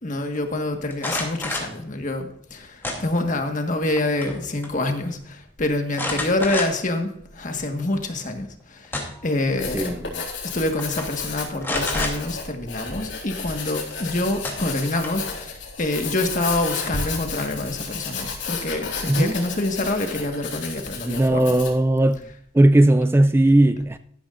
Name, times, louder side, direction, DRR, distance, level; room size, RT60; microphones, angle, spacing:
voice 1, 0.0-10.0 10.4-21.5, left 2 dB, 45° left, 1.6 m, -26 dB
sound 1, 0.9-1.8 2.8-3.4 3.8-4.4 4.6-4.7 5.9-6.9 7.5-7.6 8.6-9.3 10.3-10.5 10.8-11.1 11.6-12.1 13.9-14.0 14.4-15.3, left 2 dB, 10° left, 2.7 m, -29 dB
Writing, 9.4-21.8, left 4 dB, 90° left, 3.7 m, -32 dB
voice 2, 9.7-10.2 19.1-19.4 21.0-22.2 22.5-24.0, right 1 dB, 15° right, 0.3 m, -18 dB
13.5 x 12.0 x 2.5 m
head